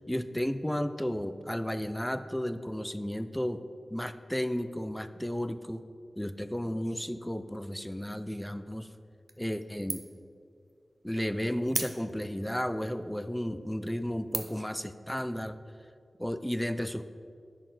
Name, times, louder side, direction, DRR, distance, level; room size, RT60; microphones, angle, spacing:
voice 1, 0.1-3.6 3.9-5.8 6.2-8.9 9.4-10.0 11.0-15.6 16.2-17.0, equal, 5° left, 11 dB, 0.3 m, -33 dB
sound 1, 9.3-9.6 9.9-10.3 10.7-10.8 11.7-12.4 13.0-13.1 13.7-13.9 14.3-14.7, right 3 dB, 65° right, 0.5 m, -35 dB
10.5 x 4.1 x 3.8 m, 2.3 s
wide cardioid pair, 75°, 0 cm